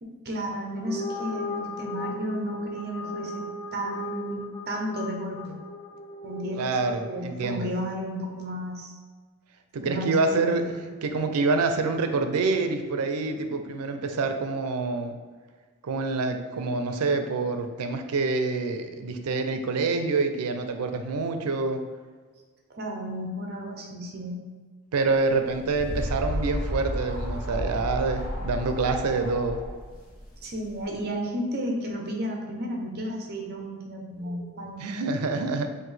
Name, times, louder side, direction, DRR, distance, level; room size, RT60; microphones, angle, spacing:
voice 1, 0.0-5.6 6.2-6.7 7.1-8.9 9.8-10.7 22.7-24.4 30.4-34.9, equal, 45° right, 1 dB, 0.7 m, -33 dB
sound 1, 0.8-7.3, left 1 dB, 15° left, 0.3 m, -36 dB
voice 2, 6.5-7.7 9.7-10.7 11.0-15.2 15.8-21.8 24.9-29.6 34.8-35.7, right 3 dB, 90° right, 6 dB, 0.5 m, -26 dB
sound 2, 25.3-30.9, equal, 75° left, 1.2 m, -32 dB
5.8 x 2.6 x 3.2 m, 1.5 s
head